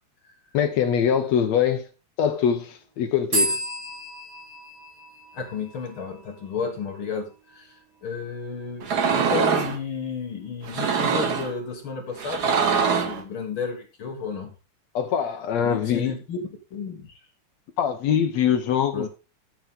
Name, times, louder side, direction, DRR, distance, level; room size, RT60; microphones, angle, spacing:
voice 1, 0.5-1.9 2.2-3.6 14.9-16.1 17.8-19.1, left 8 dB, 65° left, 1.9 m, -23 dB
sound 1, 3.3-6.9, right 1 dB, 50° right, 6.0 m, -31 dB
voice 2, 5.3-14.5 15.6-16.4 16.7-17.3 18.9-19.1, left 5 dB, 50° left, 1.8 m, -33 dB
sound 2, 8.8-9.8 10.6-11.5 12.2-13.2, right 6 dB, 85° right, 0.8 m, -23 dB
12.0 x 7.7 x 3.7 m
omnidirectional pair, 3.8 m